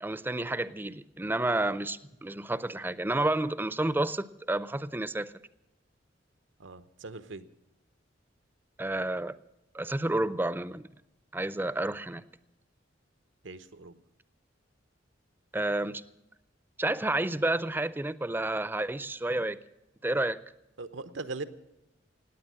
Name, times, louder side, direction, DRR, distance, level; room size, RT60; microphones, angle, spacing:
voice 1, 0.0-5.3 8.8-9.4 9.7-10.9 11.3-12.2 15.5-16.0 16.8-19.6 20.0-20.4, right 2 dB, 10° right, 16 dB, 0.5 m, -30 dB
voice 2, 6.6-7.4 13.4-14.0 20.8-21.4, right 3 dB, 90° right, 12 dB, 0.9 m, -40 dB
17.5 x 9.2 x 7.5 m, 0.92 s
head